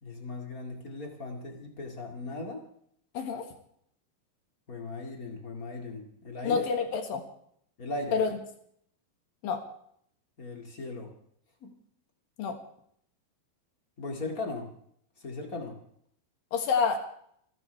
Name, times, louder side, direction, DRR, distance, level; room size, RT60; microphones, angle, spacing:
voice 1, 0.0-2.6 4.7-6.6 7.8-8.2 10.4-11.1 11.6-11.7 14.0-14.7 15.2-15.8, left 2 dB, 35° left, 2 dB, 1.3 m, -38 dB
voice 2, 6.4-7.2 8.1-8.3 9.4-9.6 12.4-12.6 16.5-17.0, left 5 dB, 60° left, 5 dB, 3.0 m, -27 dB
29.5 x 12.5 x 3.4 m, 0.67 s
omnidirectional pair, 5.2 m